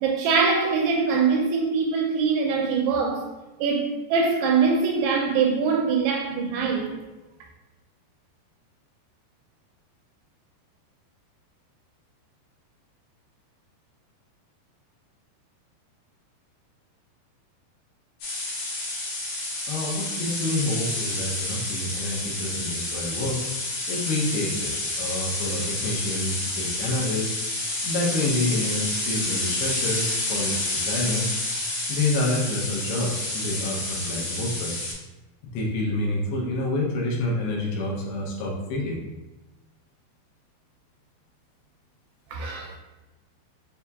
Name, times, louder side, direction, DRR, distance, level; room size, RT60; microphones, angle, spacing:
voice 1, 0.0-3.2 3.6-6.9 42.3-42.7, right 5 dB, 85° right, 2.4 m, -23 dB
sound 1, 18.2-34.9, left 2 dB, 60° left, 2.4 m, -29 dB
voice 2, 19.7-23.5 23.9-27.3 27.8-31.4 31.9-34.8 35.5-39.0, left 2 dB, 80° left, 2.6 m, -28 dB
6.7 x 2.8 x 2.3 m
omnidirectional pair, 4.8 m